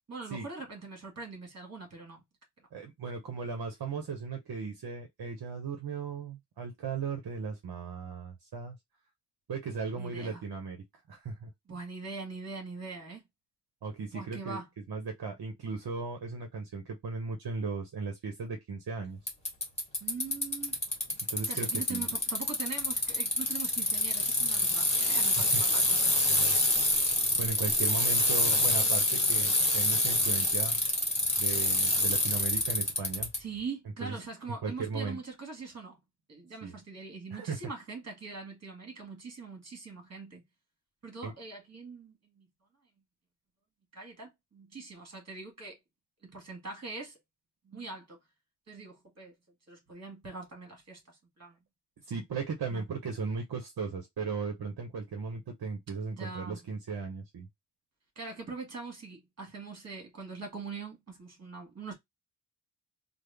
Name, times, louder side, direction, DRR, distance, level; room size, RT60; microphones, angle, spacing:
voice 1, 0.1-2.2 10.0-10.4 11.7-13.2 14.1-14.7 20.0-20.8 21.5-26.7 33.4-36.0 36.3-40.4 41.0-42.5 43.9-45.8 46.2-47.2 47.6-48.2 48.7-49.3 49.7-51.6 52.7-52.8 56.1-56.7 58.1-61.9, right 4 dB, 35° right, 1.7 m, -42 dB
voice 2, 2.7-8.8 9.5-11.5 13.8-14.6 14.9-19.2 21.3-22.0 25.4-25.6 27.3-30.8 31.4-33.3 34.0-34.2 34.6-35.2 36.6-36.8 37.3-37.6 41.2-41.3 52.1-57.5, right 5 dB, 60° right, 0.8 m, -37 dB
Bicycle, 19.3-33.4, left 1 dB, 15° left, 1.2 m, -27 dB
3.4 x 2.1 x 3.3 m
wide cardioid pair, 175°, 43 cm